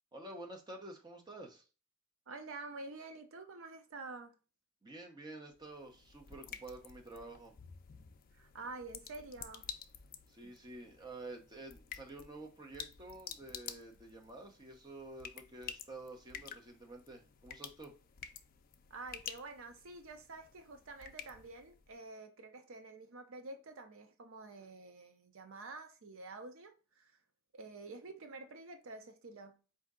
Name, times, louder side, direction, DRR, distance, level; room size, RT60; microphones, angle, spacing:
voice 1, 0.1-1.6 4.8-7.5 10.3-17.9, right 2 dB, 20° right, 0.8 m, -49 dB
voice 2, 2.3-4.3 8.3-9.7 10.4-10.5 18.9-27.2 27.5-29.6, right 3 dB, 60° right, 0.5 m, -49 dB
sound 1, 5.5-22.0, left 8 dB, 40° left, 0.4 m, -51 dB
4.3 x 2.7 x 3.6 m
head